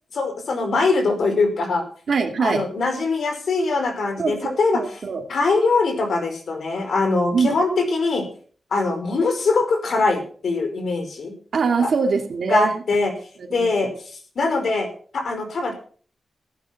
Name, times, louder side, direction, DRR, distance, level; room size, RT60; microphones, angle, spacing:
voice 1, 0.1-1.8 2.4-4.8 5.3-8.2 8.7-11.3 11.8-11.9 12.5-13.1 13.5-14.9 15.1-15.7, left 3 dB, 70° left, 5 dB, 5.1 m, -22 dB
voice 2, 2.1-2.6 4.2-5.2 7.3-7.5 11.5-12.8 13.5-13.7, right 5 dB, 65° right, 3 dB, 2.6 m, -23 dB
15.0 x 10.0 x 5.9 m, 0.44 s
wide cardioid pair, 95°, 0 cm